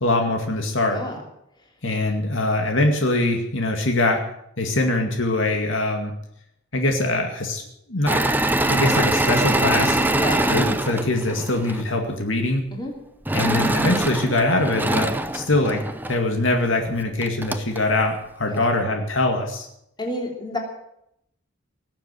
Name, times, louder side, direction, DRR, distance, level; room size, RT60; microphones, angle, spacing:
voice 1, 0.0-1.0 1.8-4.2 4.6-6.1 6.7-7.6 7.9-8.2 8.7-10.0 10.5-12.7 13.3-19.7, left 2 dB, 70° left, 3 dB, 2.2 m, -23 dB
voice 2, 0.9-1.2 10.1-10.5 12.7-12.9 18.4-18.7 20.0-20.6, left 1 dB, 20° left, 1 dB, 3.2 m, -30 dB
Engine / Mechanisms, 8.1-11.8 13.3-16.2 16.9-17.0 17.2-17.8, right 1 dB, 10° right, 0.7 m, -23 dB
19.0 x 7.5 x 9.1 m, 0.78 s
head